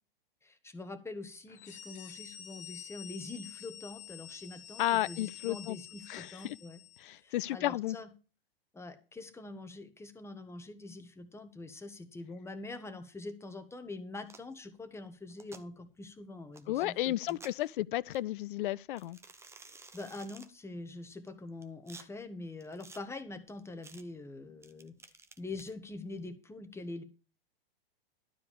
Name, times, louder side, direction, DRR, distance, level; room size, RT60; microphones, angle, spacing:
voice 1, 0.4-6.8 7.2-8.1 8.7-17.4 19.9-24.9 25.4-27.0, left 2 dB, 10° left, 1.3 m, -44 dB
sound 1, 1.5-7.2, left 10 dB, 25° left, 1.0 m, -49 dB
voice 2, 4.8-5.8 6.1-6.6 7.0-8.0 16.7-19.2, left 15 dB, 60° left, 0.5 m, -33 dB
sound 2, 14.2-14.5 15.3-15.6 16.5-16.6 17.2-17.7 18.1-18.2 19.0-20.5 21.3-22.1 22.6-23.0 23.8-24.0 24.6-25.7, right 3 dB, 10° right, 0.8 m, -53 dB
12.0 x 4.8 x 6.9 m
hypercardioid pair, 110°, 30 cm